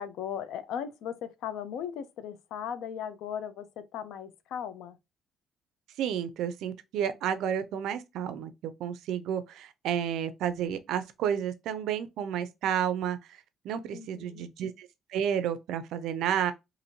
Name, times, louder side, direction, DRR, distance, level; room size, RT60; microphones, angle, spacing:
voice 1, 0.0-4.9 13.9-14.5, left 8 dB, 75° left, 0.4 m, -37 dB
voice 2, 6.0-8.5 8.8-13.4 13.6-16.5, right 9 dB, 75° right, 0.4 m, -31 dB
2.8 x 2.5 x 2.7 m
cardioid pair, 170°, 0 cm